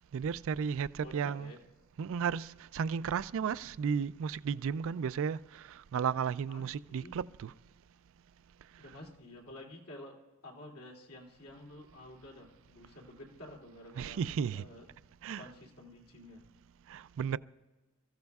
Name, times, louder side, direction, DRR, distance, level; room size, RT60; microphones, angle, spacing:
voice 1, 0.1-1.5 2.0-7.5 14.0-14.6 15.2-15.5 16.9-17.4, right 6 dB, 65° right, 0.3 m, -34 dB
voice 2, 1.0-1.6 6.5-7.1 8.8-10.2 10.4-14.2 14.5-14.8 15.3-16.4, left 1 dB, 80° left, 2.8 m, -50 dB
28.0 x 15.0 x 2.4 m
head